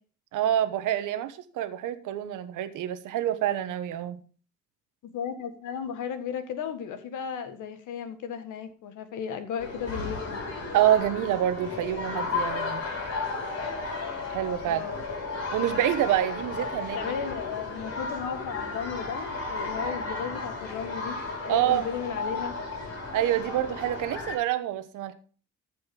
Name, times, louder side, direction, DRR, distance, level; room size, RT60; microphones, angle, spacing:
voice 1, 0.3-4.2 10.7-12.8 14.3-14.8 15.5-17.1 21.5-21.9 23.1-25.1, right 12 dB, 90° right, 1.2 m, -27 dB
voice 2, 5.0-10.4 14.6-15.0 16.9-21.2 21.4-22.6, left 7 dB, 85° left, 1.7 m, -35 dB
sound 1, 9.6-24.4, left 3 dB, 55° left, 5.2 m, -34 dB
14.5 x 5.4 x 5.3 m
cardioid pair, 90°, 30 cm